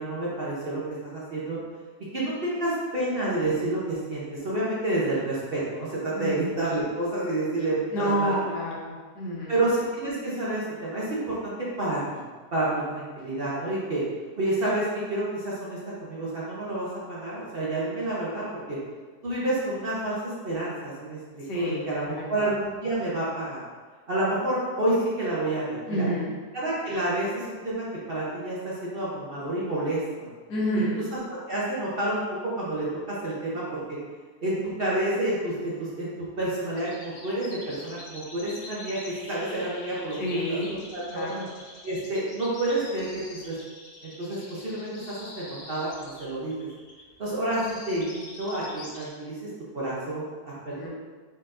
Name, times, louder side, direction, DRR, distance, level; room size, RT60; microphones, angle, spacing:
voice 1, 0.0-1.6 2.1-8.4 9.5-12.0 12.5-14.0 14.4-18.8 19.2-23.6 24.1-26.1 26.5-30.0 31.1-31.2 31.5-34.0 34.4-36.1 36.4-40.2 40.5-41.3 41.8-43.6 44.0-46.7 47.2-50.9, right 1 dB, 45° right, -7 dB, 0.8 m, -29 dB
voice 2, 6.1-6.5 7.9-9.6 21.4-22.4 25.9-26.3 30.5-31.1 40.2-40.8 41.1-41.5 50.7-50.9, equal, 85° left, -4 dB, 1.6 m, -29 dB
sound 1, 36.8-49.1, left 2 dB, 55° left, 0.6 m, -45 dB
4.3 x 4.2 x 2.5 m, 1.4 s
omnidirectional pair, 1.7 m